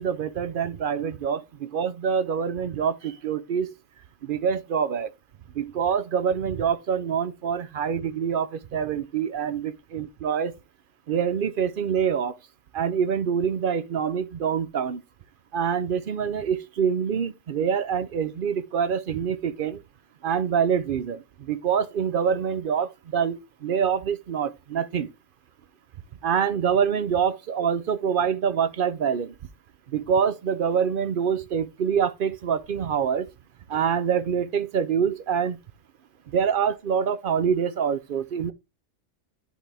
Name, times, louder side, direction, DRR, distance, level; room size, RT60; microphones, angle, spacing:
voice 1, 0.0-3.7 4.2-5.1 5.6-10.5 11.1-12.3 12.7-15.0 15.5-19.8 20.2-25.1 26.2-29.3 29.9-33.3 33.7-35.6 36.3-38.5, right 7 dB, 55° right, 0.6 m, -25 dB
11.0 x 4.0 x 3.3 m
omnidirectional pair, 1.3 m